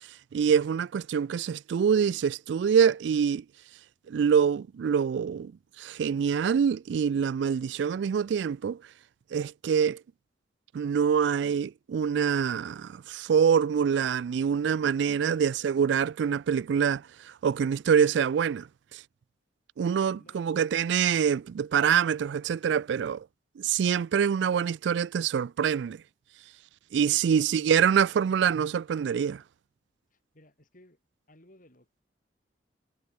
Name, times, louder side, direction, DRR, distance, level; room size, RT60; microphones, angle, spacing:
voice 1, 0.3-3.4 4.1-5.5 5.8-8.8 9.3-10.0 10.7-17.0 17.4-18.7 18.9-19.0 19.8-23.2 23.6-26.0 26.9-29.4, right 7 dB, 75° right, 0.3 m, -25 dB
voice 2, 15.2-15.9 20.1-20.5 26.9-27.8 28.1-28.2 30.1-31.0 31.3-32.0, left 1 dB, 50° left, 6.0 m, -57 dB
head